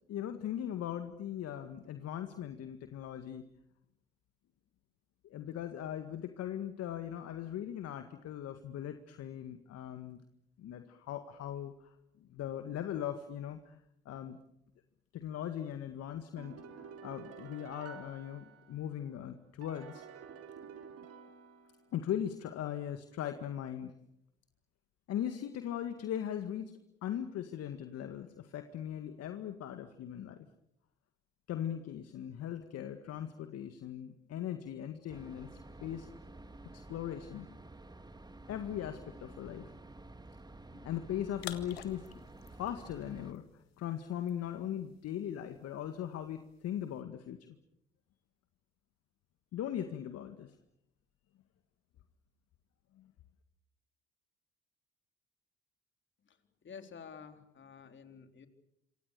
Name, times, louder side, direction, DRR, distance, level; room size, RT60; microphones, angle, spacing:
voice 1, 0.1-3.4 5.2-10.2 10.6-11.7 12.2-13.8 14.1-14.4 15.1-20.0 21.9-23.9 25.1-26.7 27.0-30.5 31.5-35.5 35.8-36.1 36.7-37.5 38.5-39.7 40.8-42.1 42.5-43.4 43.8-47.6 49.5-50.5 53.0-53.1, left 10 dB, 55° left, 8 dB, 1.9 m, -39 dB
sound 1, 16.4-19.0 19.6-22.1, right 7 dB, 55° right, 3.8 m, -51 dB
sound 2, 35.1-43.3, right 2 dB, 15° right, 1.8 m, -51 dB
sound 3, 41.3-47.0, left 11 dB, 85° left, 1.8 m, -52 dB
voice 2, 56.6-58.5, left 6 dB, 40° left, 6 dB, 3.8 m, -50 dB
27.0 x 25.5 x 6.8 m, 0.79 s
hypercardioid pair, 60°, 30 cm